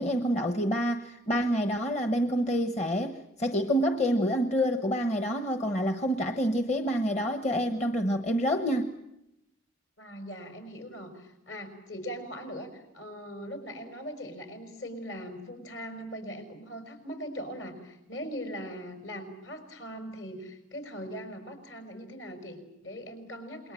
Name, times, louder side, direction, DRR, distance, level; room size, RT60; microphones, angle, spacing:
voice 1, 0.0-8.9, equal, 35° left, 6 dB, 1.1 m, -27 dB
voice 2, 10.0-23.7, equal, 70° left, 6 dB, 5.5 m, -40 dB
28.0 x 22.0 x 7.7 m, 0.88 s
head